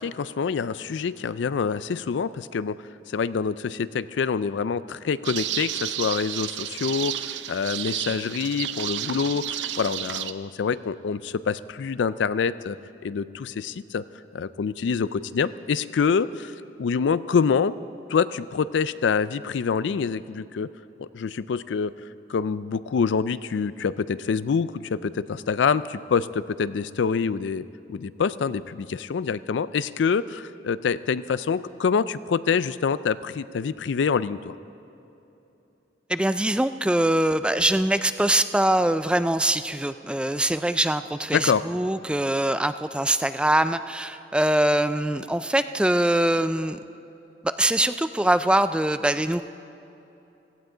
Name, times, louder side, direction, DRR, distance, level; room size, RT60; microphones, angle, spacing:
voice 1, 0.0-2.8 3.1-12.8 13.0-14.0 14.3-16.5 16.8-17.7 18.1-20.7 21.0-21.9 22.3-27.6 27.9-34.5 41.3-41.6, left 6 dB, 80° left, 16 dB, 0.4 m, -26 dB
sound 1, 5.2-10.3, right 11 dB, 75° right, 0.5 m, -31 dB
voice 2, 36.1-46.8 47.4-49.4, right 1 dB, 5° right, 11 dB, 0.3 m, -23 dB
17.0 x 15.5 x 3.9 m, 3.0 s
head